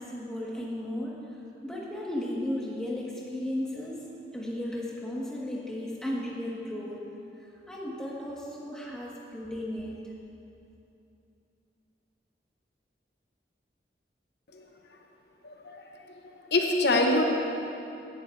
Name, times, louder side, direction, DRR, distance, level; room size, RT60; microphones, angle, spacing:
voice 1, 0.0-4.1 4.3-7.0 7.4-10.1, left 1 dB, 5° left, -5 dB, 1.6 m, -35 dB
voice 2, 15.4-15.8 16.5-17.2, left 2 dB, 65° left, 2 dB, 0.9 m, -24 dB
17.5 x 11.5 x 2.6 m, 2.8 s
head